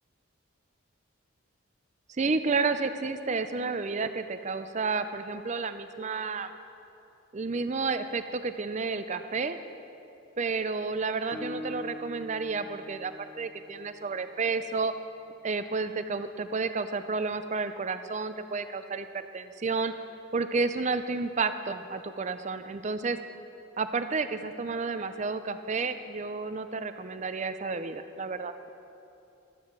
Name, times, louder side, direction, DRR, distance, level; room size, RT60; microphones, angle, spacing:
voice 1, 2.1-6.5 7.3-9.6 10.4-14.9 15.4-19.9 20.3-23.2 23.8-28.7, right 4 dB, 35° right, 10 dB, 0.5 m, -31 dB
Guitar, 11.3-15.0, left 1 dB, 5° left, 0.6 m, -44 dB
12.5 x 9.8 x 5.9 m, 2.8 s
head